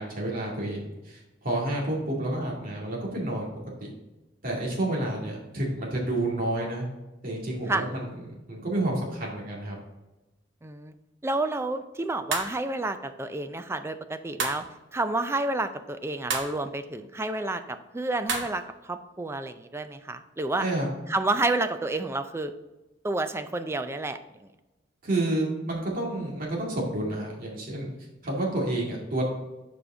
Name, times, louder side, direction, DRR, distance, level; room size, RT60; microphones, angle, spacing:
voice 1, 0.0-3.5 3.8-3.9 4.4-6.9 7.2-9.8 20.6-20.9 25.0-27.9 28.2-29.2, right 1 dB, 45° right, -3 dB, 2.1 m, -30 dB
voice 2, 10.6-10.9 11.2-14.6 14.9-20.7 21.1-22.5 23.0-24.2, right 2 dB, 15° right, 9 dB, 0.4 m, -30 dB
sound 1, 12.3-12.6 14.4-14.7 16.3-16.5 18.3-18.5, right 4 dB, 65° right, 1.0 m, -29 dB
7.1 x 5.0 x 3.8 m, 1.0 s
head